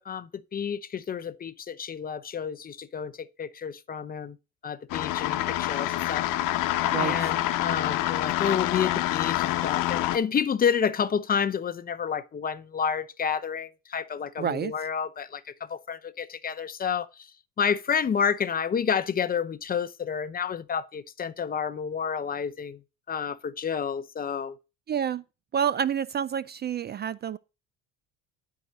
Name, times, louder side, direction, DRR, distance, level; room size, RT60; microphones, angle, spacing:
voice 1, 0.0-4.4 4.6-6.2 7.0-17.3 17.6-22.8 23.1-24.6, left 7 dB, 25° left, 0.7 m, -30 dB
sound 1, 4.9-10.2, left 14 dB, 70° left, 1.0 m, -27 dB
voice 2, 14.4-14.7 24.9-25.2 25.5-27.4, right 8 dB, 30° right, 0.4 m, -28 dB
12.0 x 4.8 x 5.4 m
cardioid pair, 115°, 33 cm